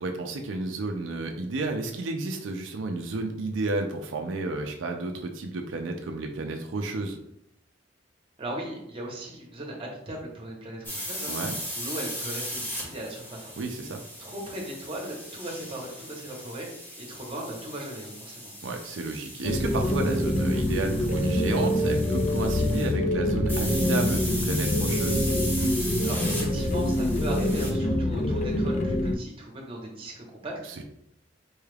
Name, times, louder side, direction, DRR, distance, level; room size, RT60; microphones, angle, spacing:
voice 1, 0.0-7.2 11.3-11.6 13.6-14.0 18.6-25.2 30.6-30.8, right 3 dB, 90° right, 4 dB, 0.4 m, -31 dB
voice 2, 8.4-11.3 11.7-13.6 14.2-16.7 17.0-18.5 26.0-30.8, right 1 dB, 30° right, -1 dB, 0.9 m, -38 dB
sound 1, 10.8-22.9 23.5-27.7, equal, 10° left, 0.9 m, -37 dB
sound 2, 19.4-29.1, left 1 dB, 35° left, 0.4 m, -25 dB
4.5 x 2.3 x 3.3 m, 0.78 s
head